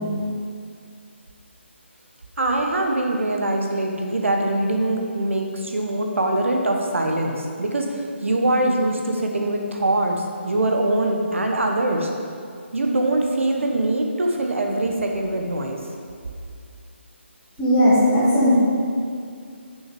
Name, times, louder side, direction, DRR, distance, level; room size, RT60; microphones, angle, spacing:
voice 1, 2.4-12.1 12.7-15.8, right 1 dB, 80° right, 2 dB, 1.3 m, -23 dB
voice 2, 17.6-18.5, equal, 10° left, -10 dB, 1.9 m, -17 dB
6.6 x 6.2 x 5.2 m, 2.3 s
figure-of-eight pair, 160°, 7 cm